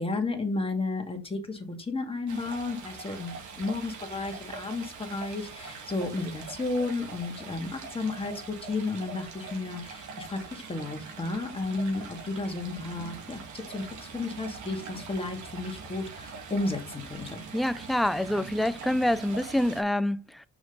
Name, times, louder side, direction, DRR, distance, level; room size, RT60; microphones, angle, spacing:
voice 1, 0.0-17.4, left 3 dB, 20° left, 2.2 m, -33 dB
Stream, 2.3-19.8, right 5 dB, 70° right, 2.2 m, -43 dB
voice 2, 17.5-20.4, left 1 dB, ahead, 0.4 m, -26 dB
6.1 x 5.4 x 4.0 m
cardioid pair, 90°, 30 cm